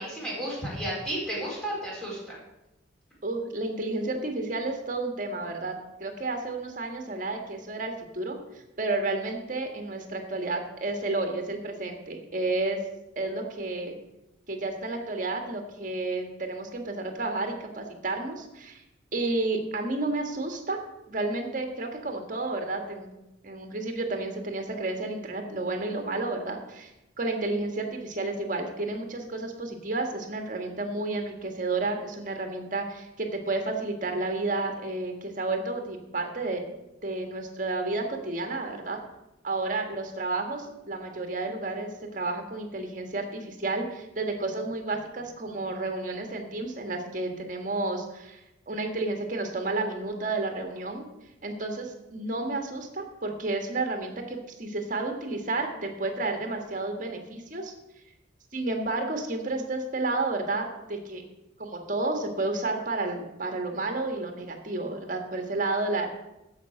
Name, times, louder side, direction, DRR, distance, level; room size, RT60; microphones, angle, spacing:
voice 1, 0.0-2.4, right 1 dB, 5° left, -6 dB, 4.3 m, -33 dB
voice 2, 3.2-8.4 8.8-12.8 13.1-14.0 14.5-18.8 19.1-20.8 21.1-26.9 27.2-36.6 37.0-39.0 39.4-48.4 48.7-51.0 51.4-57.7 58.5-61.2 61.6-66.1, right 2 dB, 40° right, 4 dB, 1.7 m, -31 dB
13.0 x 5.5 x 6.5 m, 0.94 s
head